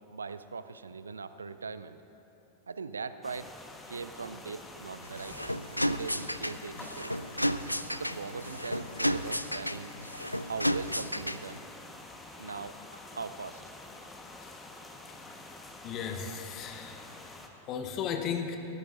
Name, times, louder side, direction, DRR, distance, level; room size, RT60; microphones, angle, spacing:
voice 1, 0.1-2.0 2.7-3.5 3.9-7.3 7.9-10.0 10.4-11.6 12.4-13.6, right 5 dB, 75° right, 12 dB, 0.4 m, -41 dB
sound 1, 3.2-17.5, left 2 dB, 10° left, 1.2 m, -48 dB
sound 2, 5.0-11.6, equal, 90° left, 0.3 m, -33 dB
voice 2, 15.8-17.1 17.7-18.6, left 7 dB, 35° left, 5 dB, 1.0 m, -35 dB
18.5 x 16.0 x 2.6 m, 2.9 s
figure-of-eight pair, 90°, 0 cm